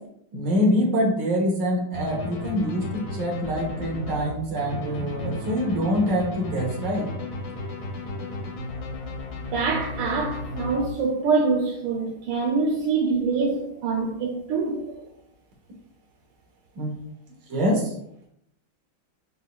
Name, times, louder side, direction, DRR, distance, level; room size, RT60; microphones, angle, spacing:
voice 1, 0.3-7.1 16.8-16.9 17.5-17.9, equal, 60° right, 1.7 m, -25 dB
sound 1, 1.9-11.3, left 2 dB, 90° left, 2.0 m, -34 dB
voice 2, 9.5-14.9, right 4 dB, 80° right, 1.4 m, -25 dB
4.4 x 4.1 x 2.2 m
omnidirectional pair, 2.3 m